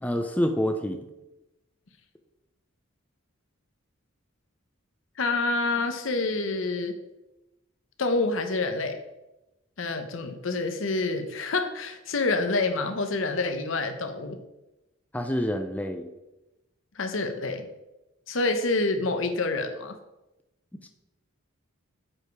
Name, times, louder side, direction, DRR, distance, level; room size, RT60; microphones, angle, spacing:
voice 1, 0.0-1.0 15.1-16.1 20.8-20.9, equal, 5° left, 5 dB, 0.5 m, -27 dB
voice 2, 5.2-6.9 8.0-9.0 9.8-14.4 17.0-17.7 18.3-19.9, left 3 dB, 65° left, 7 dB, 0.9 m, -27 dB
7.4 x 4.9 x 4.7 m, 0.96 s
head